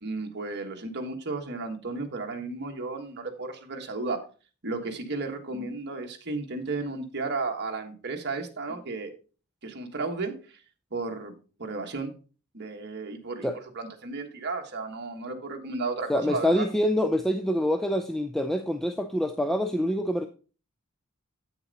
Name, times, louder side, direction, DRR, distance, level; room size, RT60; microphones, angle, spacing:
voice 1, 0.0-4.2 4.6-9.1 9.6-10.6 10.9-11.3 11.6-12.1 12.5-13.5 13.7-16.7, right 3 dB, 50° right, 1.4 m, -33 dB
voice 2, 16.1-20.3, equal, ahead, 0.4 m, -26 dB
8.5 x 6.9 x 4.0 m
head